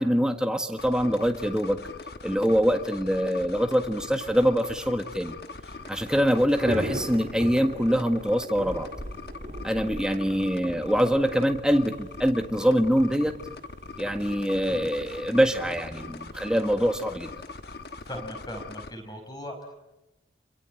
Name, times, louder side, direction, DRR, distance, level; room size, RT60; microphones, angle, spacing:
voice 1, 0.0-1.8 2.2-5.3 5.9-8.9 9.6-13.3 14.0-17.3, equal, 5° right, 6 dB, 1.5 m, -24 dB
sound 1, 0.8-18.9, left 3 dB, 60° left, 1.3 m, -41 dB
Thunder / Rain, 5.5-18.2, right 1 dB, 45° right, 3.5 m, -41 dB
voice 2, 18.0-19.7, equal, 25° left, 5 dB, 5.2 m, -38 dB
27.5 x 23.0 x 9.1 m, 0.97 s
head